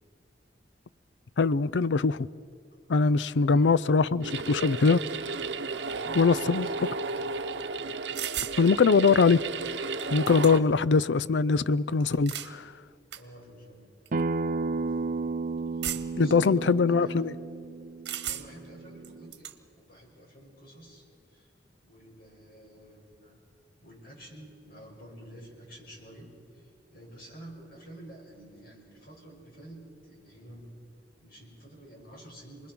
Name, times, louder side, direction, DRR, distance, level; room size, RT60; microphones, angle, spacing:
voice 1, 1.4-2.3 2.9-5.0 6.1-6.7 8.6-9.4 10.1-12.7 16.2-17.2, left 4 dB, 90° left, 0.5 m, -22 dB
voice 2, 3.3-3.8 5.9-7.2 13.1-13.9 15.7-17.3 18.2-21.5 21.8-23.4 23.8-30.8 31.2-32.7, right 1 dB, 55° left, 6.3 m, -49 dB
sound 1, 4.2-10.6, right 4 dB, 90° right, 0.9 m, -34 dB
sound 2, 8.2-8.6 9.7-9.8 10.0-10.8 12.0-12.5 13.1-13.2 14.1-14.2 15.8-16.3 18.1-18.7 19.0-19.6, right 11 dB, 70° right, 1.3 m, -35 dB
Acoustic guitar, 14.1-19.3, right 3 dB, 50° right, 0.5 m, -33 dB
28.0 x 21.0 x 6.1 m
head